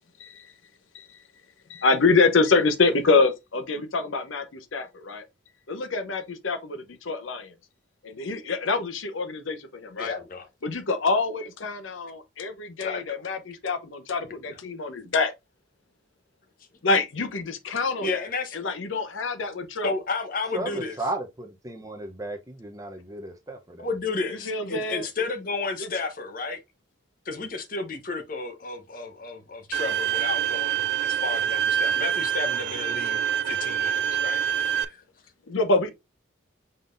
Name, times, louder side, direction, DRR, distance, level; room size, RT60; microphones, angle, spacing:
voice 1, 0.2-0.5 0.9-1.2 1.7-5.2 5.7-7.5 8.0-10.2 10.6-15.3 16.8-20.0 24.2-25.1 25.8-25.9 35.5-35.9, left 3 dB, 80° left, 0.7 m, -26 dB
voice 2, 10.0-10.5 12.8-13.3 18.0-18.7 19.8-21.0 23.8-26.6 27.2-34.4 34.8-35.0, left 3 dB, 45° left, 0.9 m, -32 dB
voice 3, 20.5-23.9, right 2 dB, 15° right, 0.7 m, -34 dB
Bowed string instrument, 29.7-34.8, right 9 dB, 60° right, 0.3 m, -26 dB
5.4 x 3.9 x 2.5 m
head